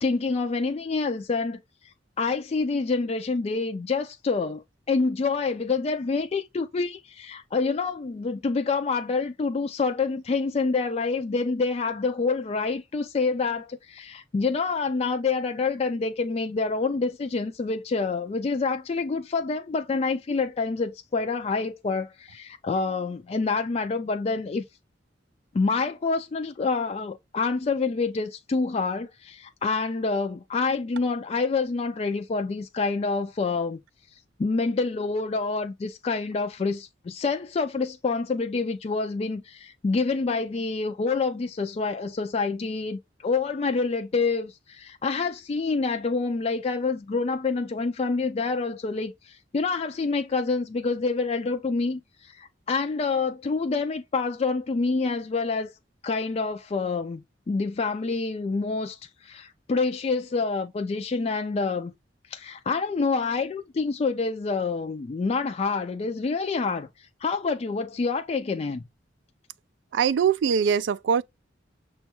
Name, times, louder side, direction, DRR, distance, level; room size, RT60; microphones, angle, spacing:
voice 1, 0.0-1.6 2.2-24.6 25.5-33.8 34.4-55.7 56.0-61.9 62.3-66.9 67.2-68.8, left 4 dB, 35° left, 0.3 m, -27 dB
voice 2, 69.9-71.2, right 7 dB, 90° right, 0.3 m, -22 dB
6.2 x 2.3 x 2.9 m
head